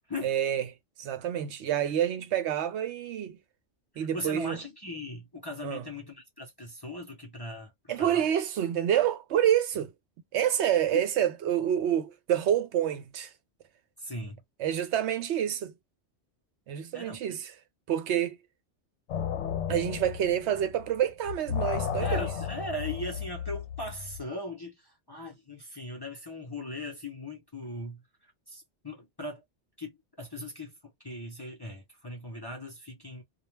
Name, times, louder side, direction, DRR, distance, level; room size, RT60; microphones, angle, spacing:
voice 1, 0.2-0.7 1.0-3.4 4.0-4.6 5.6-5.9 7.9-9.9 10.3-13.3 14.6-15.7 16.7-17.5 17.9-18.4 19.7-22.3, right 10 dB, 75° right, 0.8 m, -28 dB
voice 2, 3.9-8.3 10.9-11.0 14.0-14.4 16.9-17.2 22.0-28.0 28.5-29.4 29.8-30.7 31.0-33.2, left 1 dB, 25° left, 0.6 m, -39 dB
sound 1, 19.1-21.0 21.2-24.2, left 8 dB, 75° left, 0.9 m, -33 dB
2.3 x 2.1 x 3.0 m
omnidirectional pair, 1.2 m